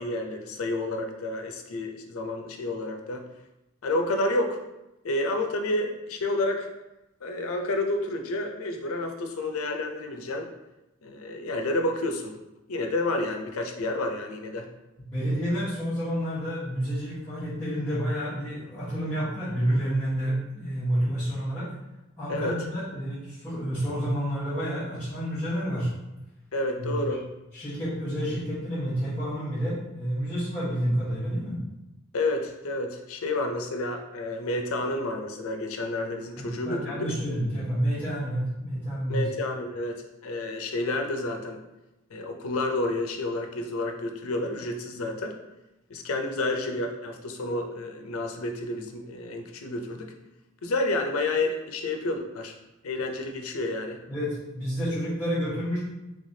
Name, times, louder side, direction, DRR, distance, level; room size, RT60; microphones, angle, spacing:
voice 1, 0.0-3.2 3.8-4.6 5.0-6.7 7.2-10.5 11.0-12.3 12.7-14.7 22.3-22.6 26.5-27.2 32.1-37.1 39.1-41.6 42.1-45.3 45.9-50.1 50.6-52.5 52.8-54.0, left 2 dB, 85° left, 4 dB, 0.5 m, -30 dB
voice 2, 15.1-21.7 22.2-25.9 26.8-26.9 27.5-31.6 36.4-39.2 54.1-55.8, equal, 10° left, -15 dB, 1.2 m, -29 dB
3.3 x 3.3 x 2.7 m, 0.97 s
head